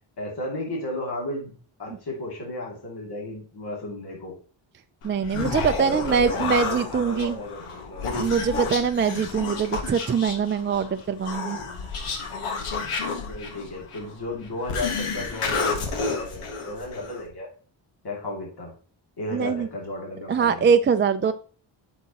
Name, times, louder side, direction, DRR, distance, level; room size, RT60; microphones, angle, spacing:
voice 1, 0.2-1.5 1.8-4.4 5.8-8.1 13.3-17.5 18.0-18.7 19.2-20.7, left 1 dB, 50° left, -2 dB, 2.6 m, -34 dB
Human voice, 5.0-17.3, left 4 dB, 90° left, 1.4 m, -31 dB
voice 2, 5.0-7.4 8.1-11.6 19.3-19.7 20.3-21.3, right 6 dB, 25° right, 8 dB, 0.4 m, -23 dB
8.3 x 6.3 x 2.9 m, 0.40 s
cardioid pair, 85°, 49 cm